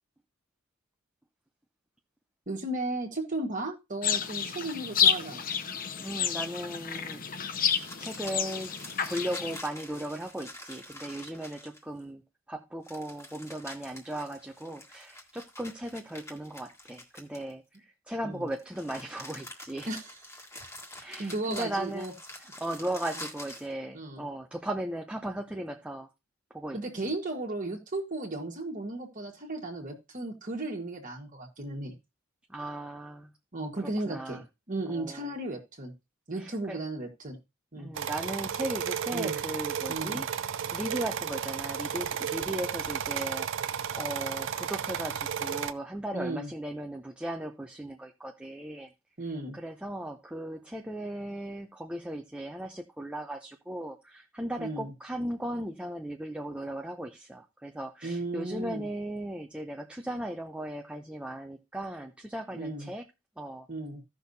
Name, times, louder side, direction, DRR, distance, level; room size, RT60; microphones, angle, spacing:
voice 1, 2.5-5.5 18.2-18.5 19.9-20.2 21.2-22.1 23.9-24.2 26.7-31.9 33.5-35.9 36.3-37.4 37.7-37.9 39.1-39.4 39.9-40.2 46.1-46.5 49.2-49.6 54.6-54.9 58.0-58.9 62.5-62.9 63.7-64.0, right 2 dB, 40° right, 0 dB, 1.6 m, -35 dB
sound 1, 4.0-9.6, left 8 dB, 45° left, 0.7 m, -30 dB
voice 2, 6.0-7.2 8.0-8.7 9.0-12.2 12.5-17.6 18.1-19.9 21.0-22.1 22.6-26.1 26.5-26.8 32.5-33.3 33.8-34.4 34.9-35.3 36.4-36.8 37.8-40.3 40.7-48.9 49.5-63.0 63.4-63.7, right 1 dB, 5° right, 3 dB, 0.6 m, -37 dB
sound 2, 7.8-12.0 12.8-17.8 18.5-23.7, left 1 dB, 15° left, 1.7 m, -46 dB
sound 3, 37.9-45.7, right 8 dB, 65° right, 0.6 m, -33 dB
15.5 x 6.0 x 2.7 m, 0.25 s
head